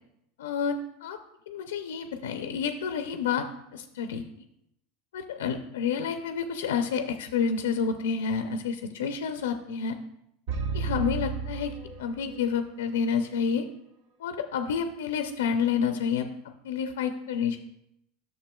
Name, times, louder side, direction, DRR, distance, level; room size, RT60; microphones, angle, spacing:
voice 1, 0.4-1.2 1.5-3.5 3.7-4.2 5.1-10.0 10.7-11.7 12.0-13.7 14.2-16.3 16.6-17.6, left 6 dB, 90° left, 7 dB, 0.5 m, -29 dB
sound 1, 10.5-12.6, right 5 dB, 65° right, 0.9 m, -33 dB
10.5 x 6.6 x 2.3 m, 0.79 s
supercardioid pair, 115°, 0 cm